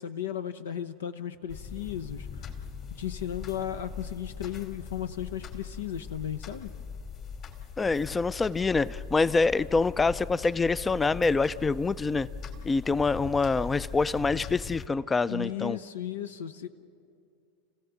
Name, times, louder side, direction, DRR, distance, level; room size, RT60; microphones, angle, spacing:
voice 1, 0.0-2.5 2.9-6.7 15.2-16.7, left 10 dB, 75° left, 0.8 m, -35 dB
sound 1, 1.5-14.9, left 6 dB, 40° left, 2.5 m, -41 dB
voice 2, 7.8-12.3 12.6-15.8, left 3 dB, 15° left, 0.5 m, -26 dB
29.0 x 16.0 x 7.2 m
figure-of-eight pair, 85°, 0 cm